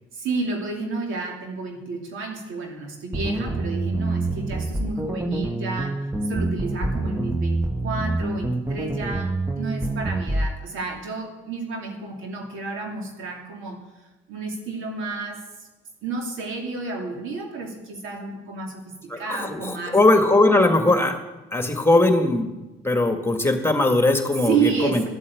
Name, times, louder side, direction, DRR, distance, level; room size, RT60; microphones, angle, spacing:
voice 1, 0.1-6.0 6.3-13.8 14.3-15.4 16.0-20.0 24.4-25.1, right 4 dB, 85° right, 2 dB, 2.7 m, -30 dB
sound 1, 3.1-10.5, right 2 dB, 10° right, 1.0 m, -26 dB
voice 2, 19.1-21.2 21.5-22.5 22.8-25.1, left 2 dB, 10° left, 5 dB, 1.9 m, -19 dB
13.0 x 8.4 x 8.5 m, 1.1 s
cardioid pair, 90°, 20 cm